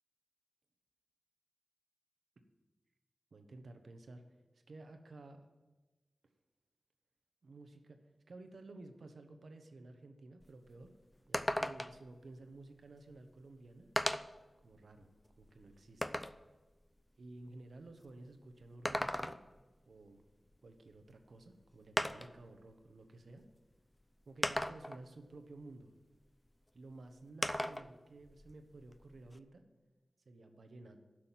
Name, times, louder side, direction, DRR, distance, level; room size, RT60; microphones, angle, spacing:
voice 1, 3.3-4.2 4.7-5.4 7.4-8.0 8.3-10.9 11.3-13.9 14.6-15.1 15.4-16.2 17.2-19.4 19.9-20.2 20.6-23.4 24.3-25.9 26.7-29.6 30.2-31.0, right 2 dB, 80° right, 6 dB, 1.2 m, -54 dB
sound 1, 10.4-10.5 10.8-10.9 11.3-12.1 13.2-13.3 14.0-14.4 15.0-16.4 18.6-19.6 21.1-21.2 22.0-22.4 23.4-23.5 24.4-25.1 27.4-27.9 28.3-29.4, left 1 dB, 10° left, 0.5 m, -37 dB
11.5 x 6.3 x 7.5 m, 1.2 s
wide cardioid pair, 65°, 0 cm